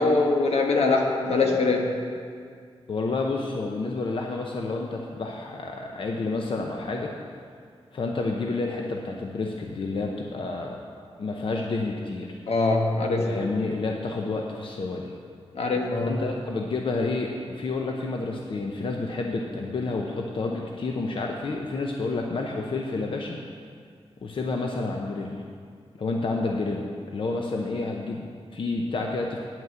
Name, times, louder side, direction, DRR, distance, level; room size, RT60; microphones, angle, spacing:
voice 1, 0.0-1.9 12.5-13.3 15.5-16.1, left 3 dB, 85° left, 1 dB, 1.3 m, -23 dB
voice 2, 2.9-7.1 7.9-10.8 11.2-12.4 13.2-15.1 16.0-23.4 24.2-25.4 26.0-29.4, left 3 dB, 55° left, 1 dB, 0.7 m, -29 dB
9.1 x 6.0 x 8.0 m, 2.1 s
wide cardioid pair, 140°, 10 cm